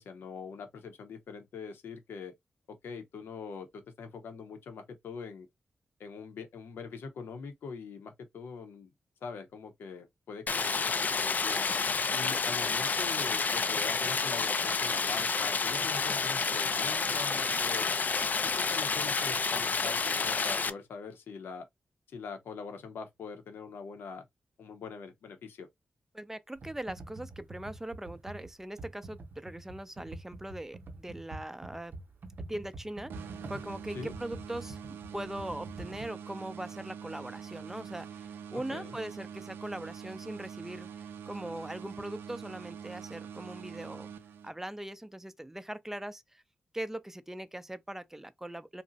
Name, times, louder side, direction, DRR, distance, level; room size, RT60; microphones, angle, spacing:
voice 1, 0.0-2.3 2.7-5.5 6.0-8.9 9.2-11.6 12.1-17.9 18.5-21.7 22.1-24.3 24.6-25.7 33.9-34.1 38.7-38.9, left 5 dB, 85° left, 0.7 m, -43 dB
Stream, 10.5-20.7, left 5 dB, 50° left, 0.4 m, -29 dB
voice 2, 26.1-31.9 32.5-44.1 44.4-46.4 46.7-48.8, right 1 dB, 10° right, 0.5 m, -41 dB
Computer keyboard, 26.6-36.1, right 2 dB, 65° right, 0.7 m, -46 dB
sound 1, 33.1-44.8, right 7 dB, 90° right, 0.4 m, -45 dB
2.5 x 2.0 x 3.9 m
cardioid pair, 50°, 4 cm